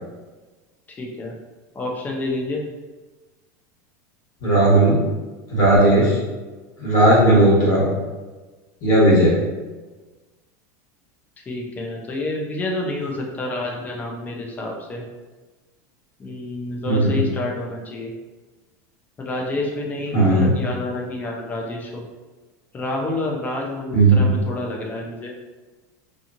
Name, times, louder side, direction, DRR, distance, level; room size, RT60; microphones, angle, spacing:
voice 1, 1.0-1.3 1.7-2.6 11.5-15.0 16.2-18.1 19.2-22.1 22.7-25.3, left 2 dB, 20° left, -1 dB, 0.5 m, -28 dB
voice 2, 4.4-5.0 5.5-6.2 6.8-7.9 8.8-9.3 16.8-17.2 20.1-20.5 23.9-24.3, right 1 dB, 45° left, -7 dB, 1.4 m, -15 dB
2.8 x 2.3 x 2.6 m, 1.3 s
supercardioid pair, 140°, 9 cm